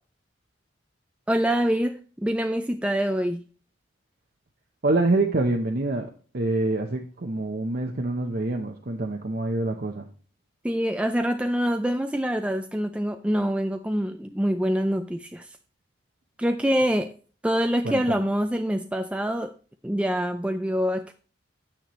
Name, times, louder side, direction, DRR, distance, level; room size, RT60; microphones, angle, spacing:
voice 1, 1.3-3.4 10.6-15.5 16.4-17.1 17.4-19.5 19.8-21.1, equal, 5° right, 0.4 m, -25 dB
voice 2, 4.8-6.1 6.3-10.1 17.9-18.3, right 2 dB, 50° right, 0.7 m, -26 dB
9.7 x 8.9 x 3.1 m
head